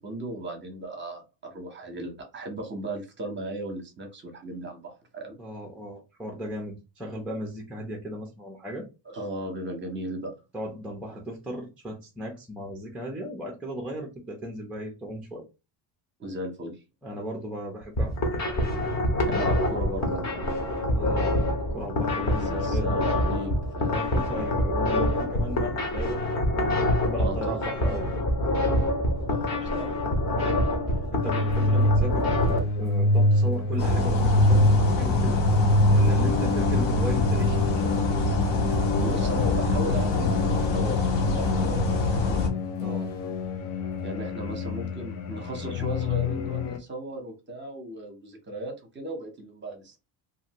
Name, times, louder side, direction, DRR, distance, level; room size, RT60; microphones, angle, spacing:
voice 1, 0.0-5.4 9.0-10.3 16.2-16.7 19.2-20.4 22.5-24.0 27.2-27.5 29.3-30.0 39.0-42.4 44.0-50.0, right 1 dB, 25° right, 4 dB, 0.7 m, -36 dB
voice 2, 5.4-8.9 10.5-15.4 17.0-18.5 21.0-21.3 21.7-23.0 23.9-26.2 26.8-28.1 30.5-30.7 31.1-35.4 35.9-38.1 42.8-43.1, equal, 5° right, 0 dB, 0.4 m, -36 dB
sound 1, 17.8-32.6, left 1 dB, 35° left, 0.8 m, -26 dB
sound 2, 31.2-46.8, left 1 dB, 85° left, 0.7 m, -25 dB
sound 3, 33.8-42.5, left 3 dB, 60° left, 0.9 m, -25 dB
2.6 x 2.5 x 2.8 m, 0.28 s
cardioid pair, 145°, 48 cm